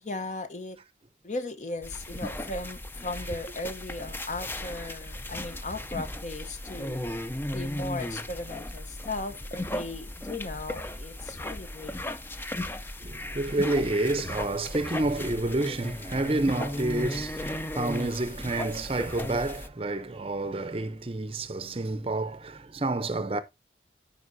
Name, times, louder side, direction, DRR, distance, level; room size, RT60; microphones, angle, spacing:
voice 1, 0.0-0.8 1.2-7.0 7.5-12.0, left 2 dB, 40° left, 0.8 m, -37 dB
sound 1, 1.8-19.7, left 1 dB, 10° left, 0.5 m, -36 dB
voice 2, 13.0-23.4, right 2 dB, 30° right, 0.6 m, -29 dB
14.0 x 5.4 x 2.6 m
head